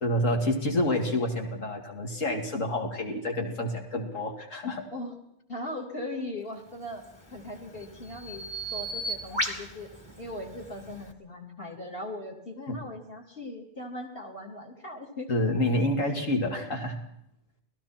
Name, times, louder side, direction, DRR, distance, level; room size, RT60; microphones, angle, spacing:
voice 1, 0.0-4.9 12.7-12.8 15.3-17.0, left 1 dB, 75° left, 3 dB, 3.1 m, -28 dB
voice 2, 5.5-7.0 7.3-8.5 8.7-9.9 10.2-15.4, left 1 dB, 45° left, 2 dB, 3.8 m, -39 dB
Bird vocalization bird call bird song, 6.9-11.1, right 1 dB, 20° left, 2.3 m, -36 dB
30.0 x 19.5 x 4.4 m, 0.76 s
omnidirectional pair, 1.3 m